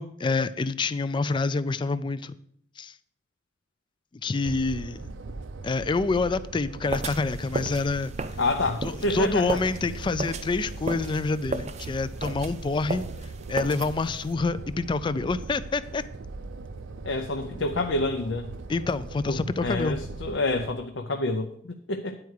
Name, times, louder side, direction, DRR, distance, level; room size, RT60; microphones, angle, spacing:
voice 1, 0.0-2.3 2.8-2.9 4.2-5.0 5.6-8.1 8.8-13.1 13.5-16.0 18.7-20.0, left 3 dB, 25° left, 15 dB, 0.3 m, -27 dB
sound 1, 4.4-20.7, right 3 dB, 90° right, 0.6 m, -40 dB
sound 2, 6.9-14.3, right 3 dB, 35° right, 0.5 m, -35 dB
voice 2, 8.4-9.6 17.0-18.5 19.3-22.2, left 2 dB, 75° left, 5 dB, 0.6 m, -28 dB
9.8 x 4.7 x 6.4 m, 0.68 s
head